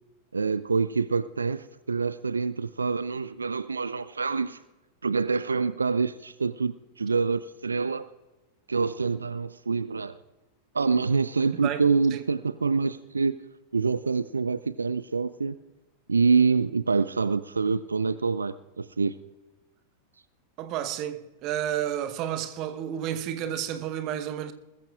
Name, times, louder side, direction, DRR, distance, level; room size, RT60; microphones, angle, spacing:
voice 1, 0.3-4.6 5.0-8.1 8.7-10.2 10.7-13.4 13.7-15.6 16.1-19.2, right 4 dB, 75° right, 0.4 m, -26 dB
voice 2, 20.6-24.5, right 10 dB, 40° right, 1.0 m, -31 dB
20.5 x 14.0 x 2.4 m
figure-of-eight pair, 90°, 0 cm